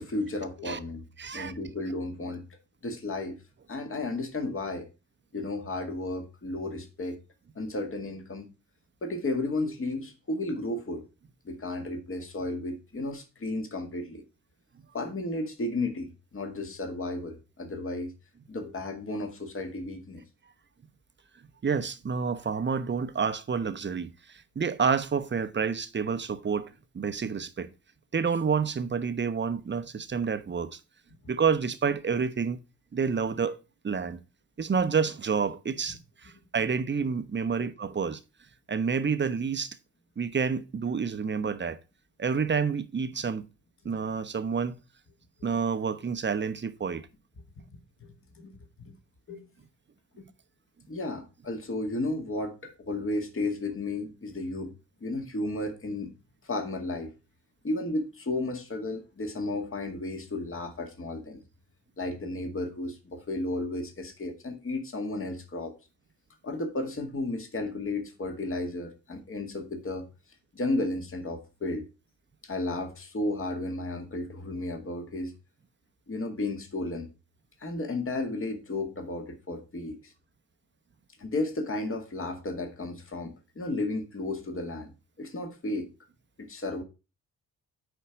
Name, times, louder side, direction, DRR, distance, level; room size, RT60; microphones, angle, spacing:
voice 1, 0.0-1.0 1.3-3.4 3.7-4.9 5.3-7.2 7.6-8.5 9.0-11.0 11.4-14.2 14.9-18.1 18.5-20.2 37.6-37.7 47.6-47.7 48.0-48.6 48.8-49.0 49.3-49.5 50.2-50.3 50.9-54.7 55.0-56.1 56.4-57.1 57.6-61.4 62.0-65.7 66.4-70.1 70.5-71.9 72.4-75.3 76.1-77.1 77.6-80.1 81.2-84.9 85.2-85.9 86.4-86.8, left 2 dB, 30° left, 2.0 m, -33 dB
voice 2, 1.2-1.5 21.6-26.7 26.9-27.7 28.1-30.8 31.3-32.6 32.9-33.6 33.8-34.2 34.6-38.2 38.7-39.8 40.2-41.8 42.2-43.5 43.8-44.8 45.4-47.1, right 6 dB, 25° right, 1.0 m, -29 dB
9.7 x 4.4 x 5.1 m
hypercardioid pair, 45°, 42 cm